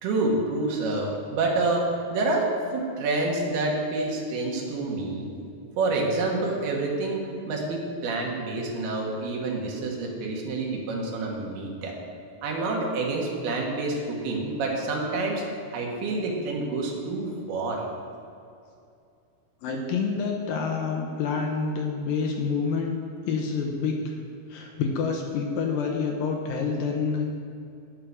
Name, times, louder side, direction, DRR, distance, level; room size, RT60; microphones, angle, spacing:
voice 1, 0.0-5.3 5.8-12.0 12.4-15.4 15.7-17.9, right 2 dB, 90° right, -1 dB, 3.4 m, -28 dB
voice 2, 19.6-23.0 23.3-24.2 24.5-27.3, left 5 dB, 75° left, 2 dB, 2.5 m, -28 dB
9.5 x 7.5 x 6.6 m, 2.5 s
omnidirectional pair, 4.4 m